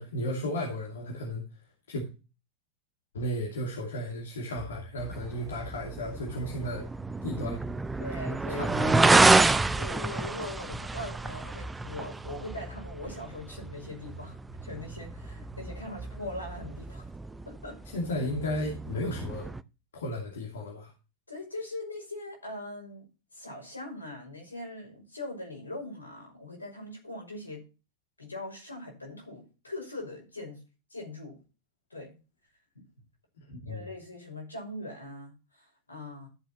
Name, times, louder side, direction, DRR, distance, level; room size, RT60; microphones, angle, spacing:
voice 1, 0.0-1.4 1.9-2.0 3.1-6.8 7.2-7.6 8.5-9.3 17.9-19.5 19.9-20.9 33.4-33.9, left 1 dB, 65° left, 0 dB, 2.6 m, -34 dB
sound 1, 4.6-5.8 7.0-10.7 11.6-12.8 13.6-17.5, right 1 dB, 40° right, 1.4 m, -47 dB
sound 2, 5.0-19.6, right 3 dB, 10° right, 0.5 m, -29 dB
voice 2, 8.0-8.9 9.8-14.4 14.6-17.1 17.5-17.8 21.3-23.0 23.3-27.6 28.2-30.6 30.9-31.4 31.9-32.1 32.7-32.8 33.6-36.3, left 1 dB, 80° left, 1 dB, 5.8 m, -41 dB
13.5 x 7.9 x 3.1 m, 0.31 s
figure-of-eight pair, 90°, 0 cm